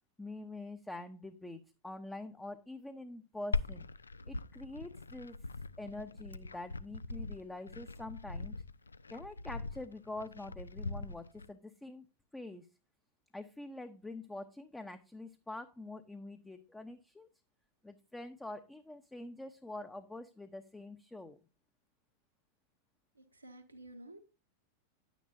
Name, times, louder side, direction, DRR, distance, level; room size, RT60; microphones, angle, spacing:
voice 1, 0.2-3.9 4.3-5.4 5.8-8.5 9.1-12.1 12.3-12.7 13.3-17.3 17.8-21.4, left 2 dB, 5° left, 8 dB, 0.8 m, -45 dB
Glass, 3.5-11.5, left 3 dB, 75° left, 0.4 m, -41 dB
voice 2, 23.3-24.2, right 1 dB, 85° right, 3 dB, 1.2 m, -51 dB
10.5 x 9.3 x 2.7 m, 0.31 s
figure-of-eight pair, 90°, 0 cm